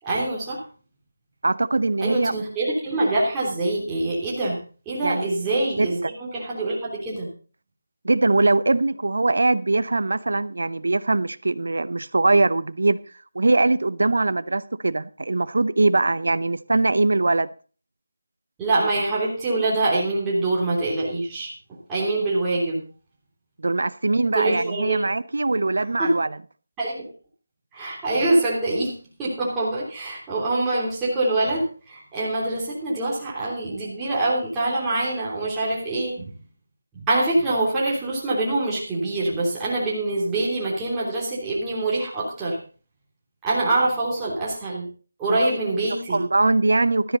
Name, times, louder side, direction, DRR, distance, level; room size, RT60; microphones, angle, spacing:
voice 1, 0.0-0.6 2.0-4.6 4.8-7.3 18.6-21.5 21.9-22.8 24.3-25.0 26.0-26.1 26.8-27.0 27.7-28.9 29.2-36.2 37.1-42.6 43.4-44.8 45.2-46.2, right 2 dB, 10° right, 3.1 m, -24 dB
voice 2, 1.4-2.3 5.0-5.3 5.8-6.1 8.0-13.0 13.3-17.5 23.6-26.4 45.3-45.5 46.1-47.2, right 2 dB, 70° right, 0.7 m, -21 dB
13.0 x 11.0 x 4.0 m
figure-of-eight pair, 160°, 0 cm